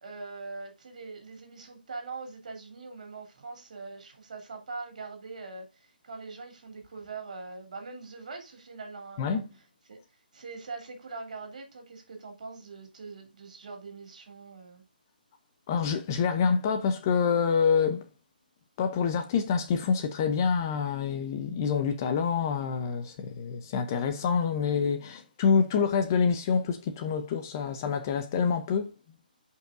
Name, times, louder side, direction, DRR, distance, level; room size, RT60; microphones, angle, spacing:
voice 1, 0.0-9.4 9.9-10.0 10.3-14.8, right 4 dB, 50° right, 3.1 m, -42 dB
voice 2, 15.7-18.0 18.8-28.9, left 6 dB, 20° left, 0.6 m, -27 dB
14.5 x 5.5 x 2.5 m
hypercardioid pair, 170°, 5 cm